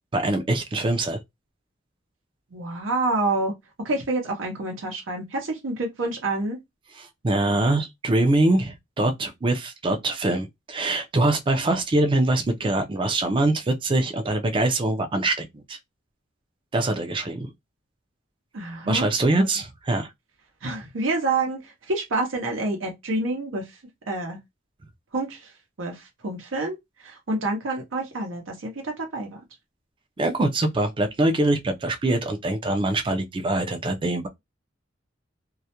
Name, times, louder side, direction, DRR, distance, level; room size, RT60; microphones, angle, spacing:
voice 1, 0.1-1.2 6.9-15.8 16.7-17.5 18.9-20.1 30.2-34.3, right 2 dB, 25° right, 0.4 m, -23 dB
voice 2, 2.5-3.5 3.8-6.6 18.5-19.1 19.4-19.5 20.6-23.7 24.1-24.4 25.1-25.5 25.8-26.8 27.0-29.4, right 2 dB, 85° right, 0.7 m, -28 dB
2.3 x 2.1 x 2.8 m
head